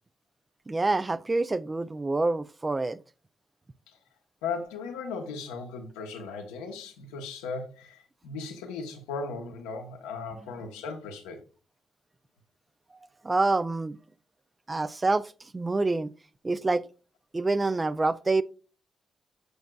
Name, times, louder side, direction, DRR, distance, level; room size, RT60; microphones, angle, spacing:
voice 1, 0.7-3.0 13.2-14.0 14.7-16.1 16.4-16.9 17.3-18.4, right 3 dB, 30° right, 0.5 m, -26 dB
voice 2, 4.4-11.4, left 4 dB, 85° left, 1.0 m, -37 dB
7.9 x 6.3 x 2.3 m
hypercardioid pair, 45°, 0 cm